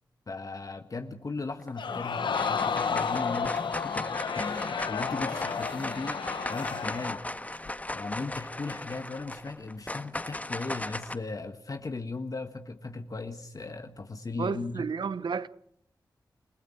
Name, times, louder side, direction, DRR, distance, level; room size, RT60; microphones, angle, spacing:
voice 1, 0.3-7.2 7.9-14.9, left 3 dB, 50° left, 1.5 m, -37 dB
sound 1, 1.6-2.0 2.3-11.1, left 1 dB, 20° left, 1.7 m, -37 dB
Crowd, 1.8-7.2 7.7-7.8, left 6 dB, 80° left, 1.3 m, -32 dB
voice 2, 14.4-15.5, right 5 dB, 75° right, 1.0 m, -31 dB
29.0 x 16.0 x 7.2 m
cardioid pair, 50°, 8 cm